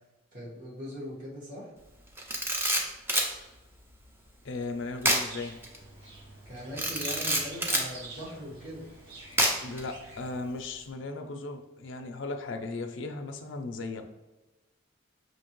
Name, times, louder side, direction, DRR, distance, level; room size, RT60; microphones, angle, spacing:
voice 1, 0.3-1.7 6.4-8.8, equal, 40° right, -7 dB, 1.4 m, -40 dB
Camera, 2.2-3.3 5.0-5.3 5.6-5.8 6.8-7.9 9.4-9.8, right 1 dB, 10° right, 0.4 m, -26 dB
voice 2, 4.4-5.6 9.6-14.0, left 3 dB, 65° left, 5 dB, 0.5 m, -36 dB
sound 1, 5.0-10.3, right 2 dB, 75° right, 1.4 m, -49 dB
5.7 x 2.8 x 3.0 m, 1.1 s
head